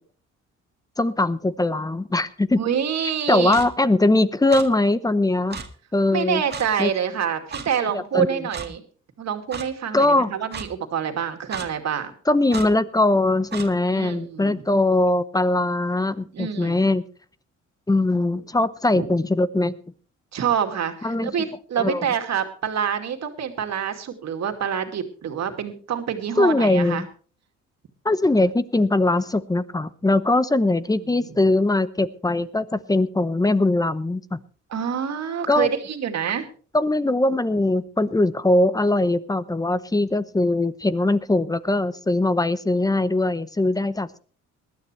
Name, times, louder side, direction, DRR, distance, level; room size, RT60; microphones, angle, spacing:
voice 1, 1.0-2.6 3.3-5.6 5.9-6.4 6.8-6.9 7.8-8.3 9.9-10.3 12.3-17.0 17.9-19.7 21.0-21.3 21.8-22.0 26.4-27.1 28.0-34.4 35.5-35.7 36.7-44.2, left 2 dB, 10° left, 15 dB, 0.8 m, -21 dB
voice 2, 2.6-3.6 6.1-8.8 9.2-12.1 13.9-14.6 16.3-16.9 18.9-19.1 20.3-27.0 31.0-31.4 34.7-36.5, right 8 dB, 60° right, 5 dB, 2.4 m, -27 dB
Clock, 3.5-3.7 4.5-4.7 5.5-5.7 6.5-6.7 7.5-7.7 8.5-8.7 9.5-9.7 10.5-10.7 11.5-11.7 12.5-12.7 13.5-13.7, right 5 dB, 35° right, 1.8 m, -33 dB
20.0 x 12.5 x 3.3 m, 0.40 s
cardioid pair, 90°, 30 cm